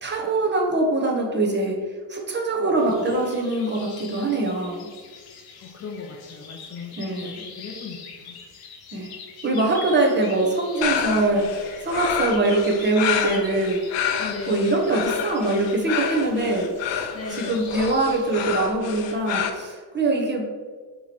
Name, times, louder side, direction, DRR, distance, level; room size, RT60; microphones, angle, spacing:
voice 1, 0.0-1.8 2.1-4.9 7.0-7.4 8.9-9.1 9.4-13.8 14.5-20.5, right 2 dB, 25° right, 0 dB, 0.9 m, -23 dB
sound 1, 2.8-18.6, left 5 dB, 60° left, 1.0 m, -43 dB
voice 2, 5.6-8.4 14.2-14.7 17.1-17.6, left 4 dB, 35° left, 3 dB, 0.6 m, -37 dB
sound 2, 10.8-19.5, left 8 dB, 90° left, 0.7 m, -28 dB
7.2 x 3.1 x 4.3 m, 1.5 s
cardioid pair, 145°, 42 cm